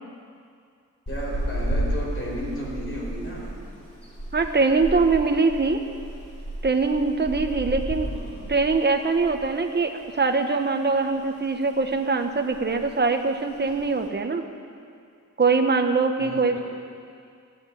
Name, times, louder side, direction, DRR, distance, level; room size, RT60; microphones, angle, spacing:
voice 1, 1.1-3.9 8.0-8.4 16.2-16.6, equal, 45° left, -3 dB, 4.9 m, -34 dB
sound 1, 1.1-9.6 9.8-10.0 10.4-11.3 11.6-12.0 12.2-12.3 12.5-13.0 13.5-14.0, right 1 dB, 20° left, 4.2 m, -33 dB
voice 2, 4.3-5.8 6.6-8.1 8.5-14.4 15.4-16.6, right 4 dB, 35° right, 5 dB, 1.2 m, -22 dB
16.0 x 9.2 x 9.5 m, 2.3 s
wide cardioid pair, 125°, 30 cm